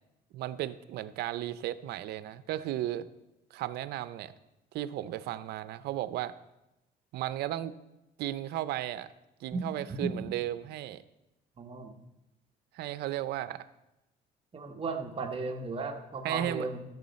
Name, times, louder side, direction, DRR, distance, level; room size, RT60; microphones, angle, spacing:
voice 1, 0.3-3.1 3.5-4.3 4.7-6.3 7.1-7.7 8.2-9.1 9.4-11.0 12.7-13.7 16.2-16.7, right 13 dB, 75° right, 14 dB, 0.5 m, -35 dB
voice 2, 9.9-10.2 11.6-11.9 14.5-16.8, right 3 dB, 35° right, 3 dB, 1.3 m, -35 dB
13.0 x 7.0 x 4.2 m, 0.95 s
cardioid pair, 110°, 17 cm